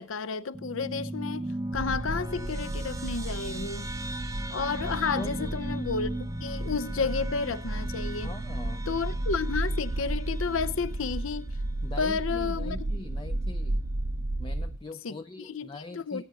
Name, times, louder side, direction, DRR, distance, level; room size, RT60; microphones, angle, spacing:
voice 1, 0.0-3.9 4.5-8.3 8.9-11.5 12.0-12.8 15.0-15.1 15.5-16.2, left 5 dB, 70° left, 0.6 m, -31 dB
sound 1, 0.5-11.3, right 1 dB, 15° right, 0.7 m, -37 dB
sound 2, 1.7-14.8, right 1 dB, 65° right, 0.7 m, -33 dB
voice 2, 5.1-5.5 8.2-8.9 11.8-13.9 14.4-16.2, left 2 dB, 20° left, 0.4 m, -42 dB
19.0 x 9.0 x 2.8 m
head